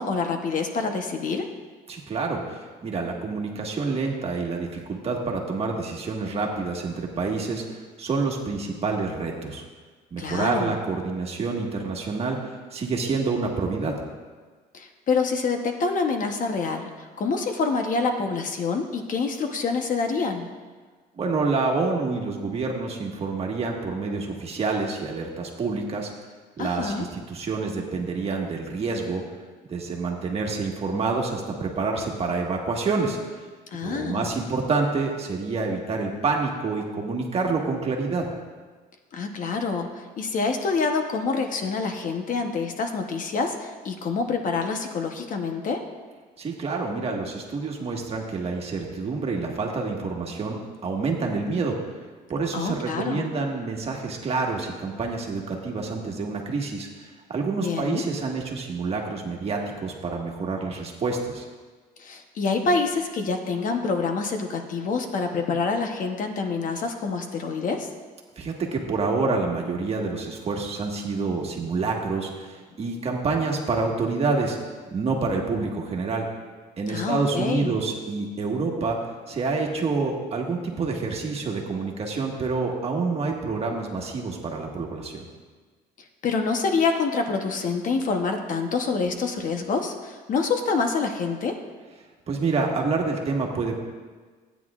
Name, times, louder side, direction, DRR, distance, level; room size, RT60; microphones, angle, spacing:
voice 1, 0.0-1.5 10.2-10.8 14.7-20.5 26.6-27.1 33.7-34.3 39.1-45.8 52.5-53.3 57.6-58.0 62.0-67.9 76.9-77.8 86.2-91.6, left 4 dB, 50° left, 5 dB, 1.0 m, -26 dB
voice 2, 1.9-9.6 10.1-12.4 12.7-14.0 21.2-26.1 26.6-29.2 29.7-33.2 33.8-38.3 46.4-51.8 52.3-61.4 68.4-74.6 74.9-76.3 76.8-79.0 79.3-85.3 92.3-93.8, right 4 dB, 35° right, 0 dB, 1.6 m, -27 dB
15.5 x 9.3 x 2.4 m, 1.4 s
cardioid pair, 110°, 17 cm